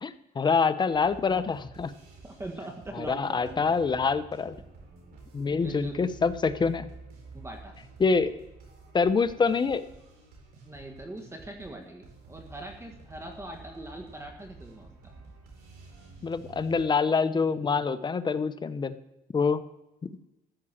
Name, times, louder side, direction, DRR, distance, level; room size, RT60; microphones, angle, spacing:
voice 1, 0.0-1.9 2.9-4.6 5.3-6.9 8.0-8.4 8.9-9.8 16.2-19.0 19.3-19.6, left 5 dB, 25° left, 12 dB, 0.8 m, -26 dB
sound 1, 0.9-16.9, right 3 dB, 65° right, 4.4 m, -50 dB
voice 2, 2.2-3.7 5.6-6.1 7.3-7.7 10.7-14.9, right 1 dB, 15° right, 3 dB, 1.6 m, -41 dB
13.5 x 6.3 x 7.4 m, 0.94 s
cardioid pair, 110°, 17 cm